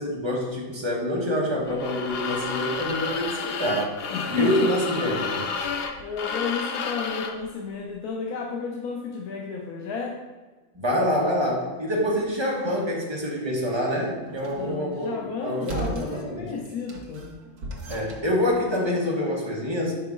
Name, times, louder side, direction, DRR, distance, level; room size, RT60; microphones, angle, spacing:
voice 1, 0.0-3.9 4.3-5.5 10.7-16.5 17.9-19.9, equal, 20° right, -4 dB, 1.1 m, -26 dB
sound 1, 1.7-7.4, left 5 dB, 70° left, 0.5 m, -31 dB
voice 2, 4.1-4.7 6.0-10.2 14.5-17.4, left 5 dB, 85° left, 0 dB, 1.2 m, -32 dB
sound 2, 14.2-14.8 15.6-16.2 16.6-18.3, right 3 dB, 85° right, 1.5 m, -37 dB
5.9 x 4.6 x 3.7 m, 1.3 s
omnidirectional pair, 1.6 m